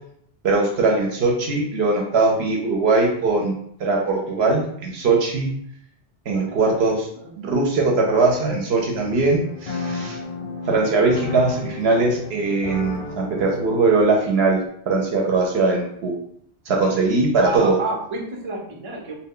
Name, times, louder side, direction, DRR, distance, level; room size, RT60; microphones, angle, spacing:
voice 1, 0.4-3.5 3.8-5.5 6.3-7.1 7.4-10.2 10.7-16.1 16.7-17.8, right 3 dB, 65° right, 0 dB, 0.8 m, -20 dB
voice 2, 6.3-6.8 7.1-7.3 17.3-19.1, right 2 dB, 40° right, -1 dB, 0.4 m, -30 dB
sound 1, 9.0-14.7, left 2 dB, 45° left, 0.6 m, -33 dB
2.2 x 2.2 x 3.6 m, 0.68 s
omnidirectional pair, 1.2 m